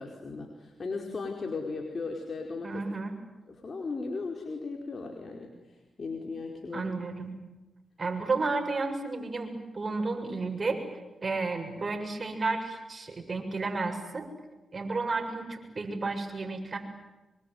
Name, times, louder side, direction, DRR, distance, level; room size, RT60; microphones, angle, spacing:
voice 1, 0.0-2.8 3.5-6.9, left 3 dB, 50° left, 2 dB, 4.8 m, -37 dB
voice 2, 2.6-3.1 6.7-7.3 8.0-14.3 14.7-16.8, right 3 dB, 45° right, 5 dB, 7.2 m, -32 dB
25.5 x 24.0 x 9.5 m, 1.1 s
supercardioid pair, 50°, 0 cm